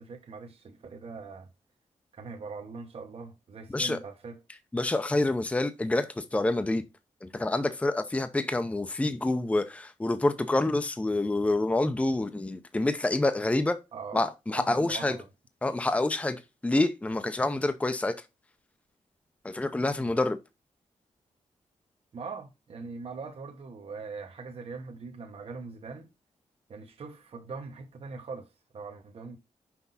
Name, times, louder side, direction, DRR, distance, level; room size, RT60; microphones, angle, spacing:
voice 1, 0.0-1.5 2.1-4.4 13.9-15.3 20.0-20.2 22.1-26.1 26.7-28.5 28.7-29.4, right 4 dB, 50° right, 1.1 m, -42 dB
voice 2, 4.7-6.8 7.2-13.8 14.1-15.2 15.6-16.4 16.6-18.1 19.4-20.4, left 2 dB, 10° left, 0.6 m, -27 dB
5.9 x 5.3 x 4.0 m
wide cardioid pair, 120°, 13 cm